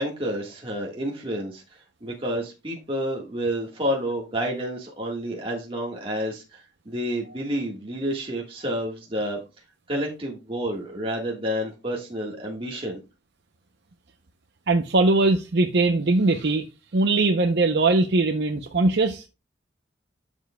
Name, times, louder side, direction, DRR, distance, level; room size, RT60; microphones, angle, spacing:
voice 1, 0.0-9.4 9.9-13.0, equal, 30° right, 1.6 m, -29 dB
voice 2, 14.7-16.7 16.9-19.3, right 3 dB, 60° right, 0.7 m, -21 dB
12.5 x 7.2 x 2.3 m
head